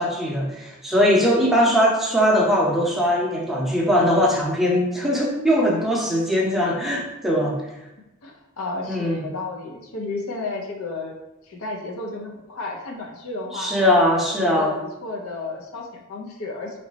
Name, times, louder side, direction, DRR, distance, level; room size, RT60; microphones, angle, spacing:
voice 1, 0.0-7.6 8.9-9.3 13.5-14.7, equal, ahead, -3 dB, 0.6 m, -20 dB
voice 2, 8.2-11.1 11.5-13.7 14.3-14.8 15.0-16.8, left 3 dB, 90° left, 1 dB, 0.7 m, -32 dB
3.1 x 3.0 x 3.9 m, 0.93 s
head